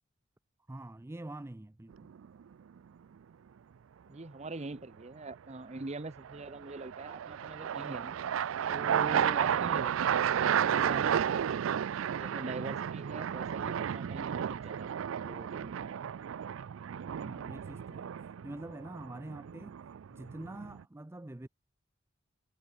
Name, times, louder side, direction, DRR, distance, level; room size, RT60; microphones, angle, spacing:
voice 1, 0.7-2.1 17.2-19.8 20.1-21.5, right 1 dB, 15° right, 0.4 m, -45 dB
sound 1, 1.9-2.4 6.2-20.8, right 8 dB, 85° right, 0.4 m, -33 dB
voice 2, 4.1-8.2 8.7-11.2 12.1-15.9, right 2 dB, 35° right, 0.9 m, -43 dB
head